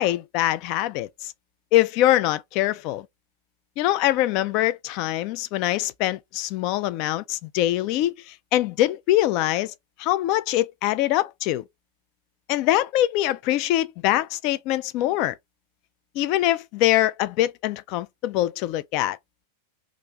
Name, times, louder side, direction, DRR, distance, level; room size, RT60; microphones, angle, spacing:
voice 1, 0.0-1.3 1.7-3.1 3.8-9.7 10.0-11.6 12.5-15.4 16.2-19.2, left 14 dB, 45° left, 0.3 m, -23 dB
3.0 x 2.5 x 3.4 m
figure-of-eight pair, 90°, 0 cm